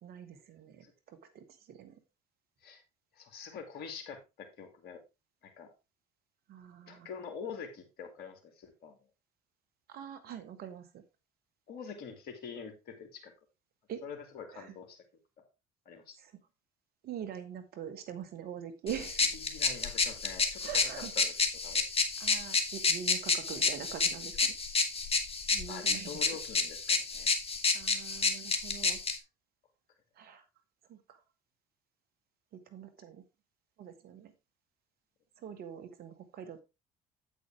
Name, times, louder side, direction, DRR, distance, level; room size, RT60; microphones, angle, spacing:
voice 1, 0.0-2.0 6.5-7.1 9.9-11.0 13.9-14.0 14.5-14.7 16.2-16.3 17.0-19.2 20.6-21.1 22.2-24.5 25.5-26.4 27.7-29.0 30.2-30.5 30.9-31.2 32.5-33.2 33.8-34.3 35.4-36.6, right 8 dB, 60° right, 2.0 m, -44 dB
voice 2, 3.2-5.0 5.4-5.7 6.9-8.9 11.7-13.3 14.0-15.0 15.4-15.5 15.9-16.2 19.4-20.8 21.2-21.3 21.6-21.9 25.7-27.3, left 6 dB, 60° left, 2.6 m, -45 dB
sound 1, 18.9-29.2, left 4 dB, 35° left, 2.3 m, -30 dB
8.6 x 8.3 x 3.5 m
hypercardioid pair, 65°, 18 cm